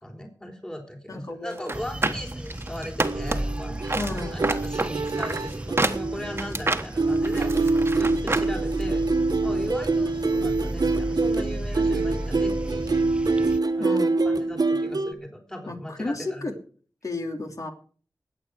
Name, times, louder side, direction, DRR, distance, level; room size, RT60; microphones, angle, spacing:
voice 1, 0.0-9.1 9.4-13.1 13.7-14.0 14.2-16.5, equal, 10° left, 3 dB, 3.5 m, -38 dB
voice 2, 1.1-1.7 2.0-2.1 4.0-4.4 13.8-14.3 15.7-16.5 17.0-17.7, left 2 dB, 50° left, 4 dB, 3.0 m, -33 dB
sound 1, 1.6-3.6 3.9-8.5 8.8-8.9, right 2 dB, 35° right, 1.3 m, -28 dB
sound 2, 1.7-13.6, right 1 dB, 15° right, 0.7 m, -34 dB
sound 3, 3.0-6.7 7.0-15.1, right 3 dB, 65° right, 1.2 m, -25 dB
21.0 x 8.8 x 4.9 m, 0.43 s
wide cardioid pair, 90°, 7 cm